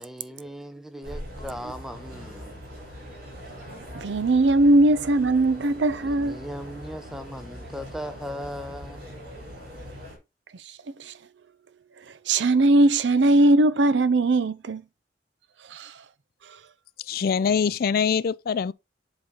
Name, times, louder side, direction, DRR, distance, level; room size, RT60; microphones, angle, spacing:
voice 1, 0.0-2.6 5.9-9.1, equal, ahead, 0.7 m, -38 dB
sound 1, 1.0-10.2, equal, 55° right, 3.5 m, -41 dB
voice 2, 3.9-6.4 11.0-11.1 12.3-14.8 15.7-15.9, right 2 dB, 70° right, 0.5 m, -20 dB
voice 3, 17.1-18.7, left 6 dB, 55° left, 0.3 m, -23 dB
7.9 x 4.1 x 3.6 m
head